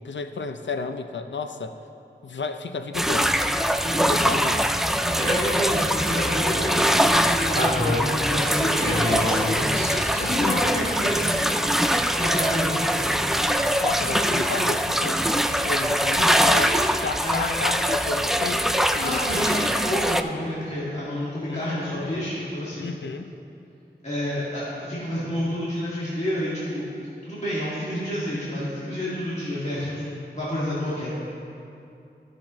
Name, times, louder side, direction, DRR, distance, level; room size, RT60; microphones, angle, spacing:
voice 1, 0.0-1.8 2.2-3.3 4.0-4.7 10.4-10.8 13.8-19.8 21.5-22.3 22.8-23.2, left 4 dB, 85° left, 7 dB, 0.5 m, -32 dB
sound 1, 2.9-20.2, equal, ahead, 0.3 m, -23 dB
voice 2, 3.8-4.4 4.8-9.5 9.9-11.5 12.1-13.2 17.2-17.5 19.0-22.9 24.0-26.9 27.2-31.2, equal, 35° left, -10 dB, 1.9 m, -29 dB
sound 2, 6.2-14.8, left 1 dB, 60° left, 1.7 m, -32 dB
14.5 x 5.8 x 3.0 m, 2.7 s
wide cardioid pair, 55°, 18 cm